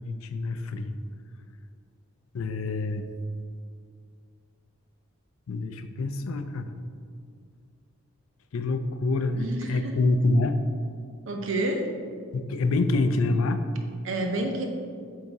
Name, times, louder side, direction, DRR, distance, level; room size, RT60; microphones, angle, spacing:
voice 1, 0.0-1.0 2.3-3.1 5.5-6.7 8.5-10.6 12.3-13.7, left 2 dB, 75° left, 9 dB, 0.4 m, -26 dB
voice 2, 9.4-10.0 11.3-11.9 14.0-14.6, right 1 dB, 65° right, 3 dB, 0.8 m, -29 dB
8.0 x 3.8 x 4.1 m, 2.2 s
head